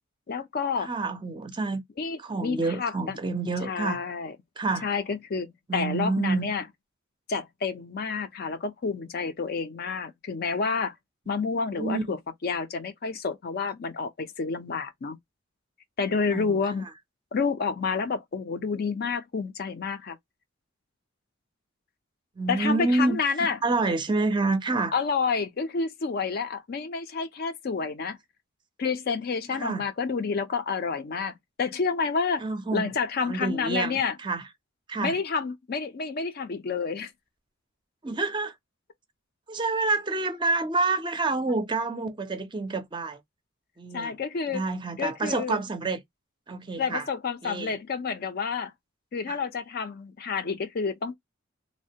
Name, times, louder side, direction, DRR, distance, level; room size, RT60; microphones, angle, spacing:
voice 1, 0.3-0.9 2.0-3.2 3.7-4.4 4.8-5.5 5.7-6.6 7.3-10.9 11.3-15.2 16.0-16.9 17.3-20.2 22.5-23.6 24.9-28.2 28.8-32.4 32.7-34.1 35.0-37.1 43.9-44.6 45.0-45.6 46.8-48.7 49.1-51.1, left 5 dB, 50° left, 0.4 m, -29 dB
voice 2, 0.8-1.8 2.2-4.0 4.6-4.9 5.7-6.5 11.7-12.2 16.3-16.6 22.4-24.9 29.5-29.8 32.4-32.9 33.3-34.5 34.9-35.2 38.0-38.5 39.5-43.2 43.8-44.2 44.5-46.0 46.5-47.1 47.4-47.8 49.3-49.4, right 3 dB, 25° right, 0.5 m, -28 dB
3.1 x 2.1 x 2.7 m
head